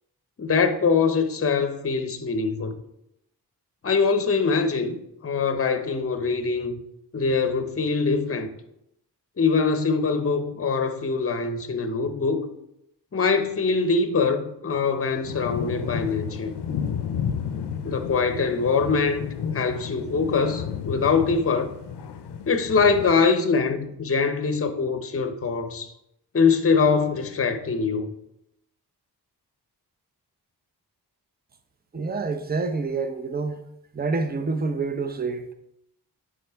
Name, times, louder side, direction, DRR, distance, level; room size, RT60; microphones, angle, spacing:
voice 1, 0.4-2.7 3.8-6.8 7.1-8.5 9.4-12.5 13.1-16.5 17.8-21.7 22.5-25.9 26.3-28.1, left 4 dB, 35° left, 0.7 m, -23 dB
sound 1, 15.2-23.2, left 7 dB, 80° left, 0.6 m, -32 dB
voice 2, 31.9-33.6 33.9-35.5, right 4 dB, 25° right, 0.6 m, -27 dB
9.4 x 3.8 x 3.5 m
cardioid pair, 70°, 40 cm